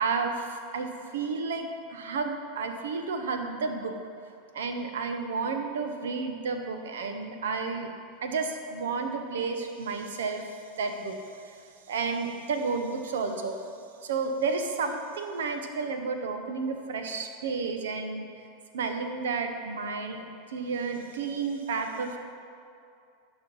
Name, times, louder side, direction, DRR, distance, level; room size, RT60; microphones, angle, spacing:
voice 1, 0.0-3.9 4.5-7.9 8.2-11.2 11.4-13.6 14.0-18.3 18.7-22.2, right 4 dB, 85° right, 6 dB, 0.8 m, -31 dB
10.5 x 4.5 x 5.4 m, 2.4 s
hypercardioid pair, 110°, 0 cm